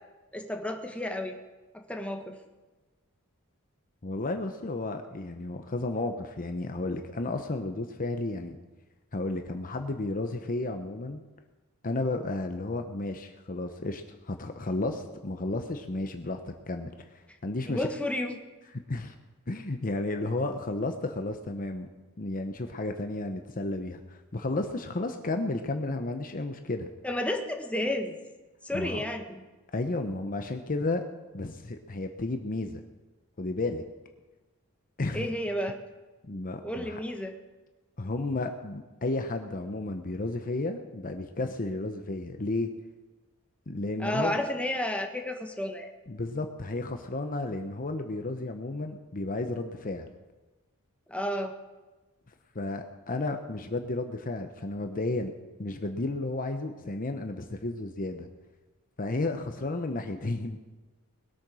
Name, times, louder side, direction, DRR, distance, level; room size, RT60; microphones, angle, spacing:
voice 1, 0.3-1.4 1.7-2.4 17.7-18.4 27.0-28.1 28.6-29.4 35.1-35.8 36.6-37.3 44.0-45.9 51.1-51.5, left 1 dB, 5° left, 4 dB, 1.4 m, -31 dB
voice 2, 4.0-8.6 9.1-11.2 11.8-17.9 18.9-19.1 19.5-21.9 22.2-26.9 28.7-29.0 29.7-31.0 31.3-32.8 33.4-33.8 35.0-35.3 36.2-37.0 38.0-42.7 43.7-44.4 46.1-50.1 52.5-55.3 55.6-58.3 59.0-60.6, left 2 dB, 40° left, 6 dB, 0.9 m, -32 dB
20.0 x 8.9 x 6.2 m, 1.2 s
head